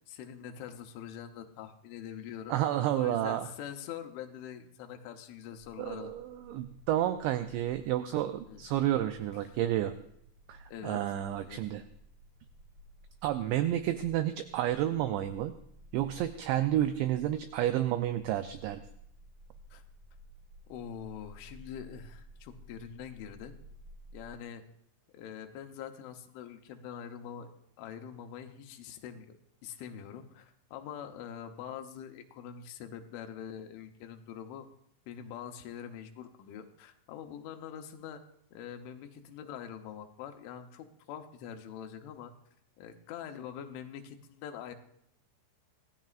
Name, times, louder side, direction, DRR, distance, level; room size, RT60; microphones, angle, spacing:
voice 1, 0.1-2.6 2.9-6.1 8.5-8.7 9.5-9.6 10.7-11.0 11.3-11.6 19.7-19.8 20.7-23.6 24.1-24.6 25.1-27.5 27.8-29.3 29.6-34.7 35.1-38.2 38.5-42.3 42.8-44.7, left 9 dB, 75° left, 5 dB, 3.2 m, -44 dB
voice 2, 2.5-3.5 5.8-9.9 10.5-11.8 13.2-15.5 15.9-18.8, right 12 dB, 90° right, 9 dB, 2.5 m, -30 dB
sound 1, 5.5-24.4, equal, 45° right, 2.1 m, -55 dB
24.5 x 16.0 x 2.5 m, 0.71 s
omnidirectional pair, 5.9 m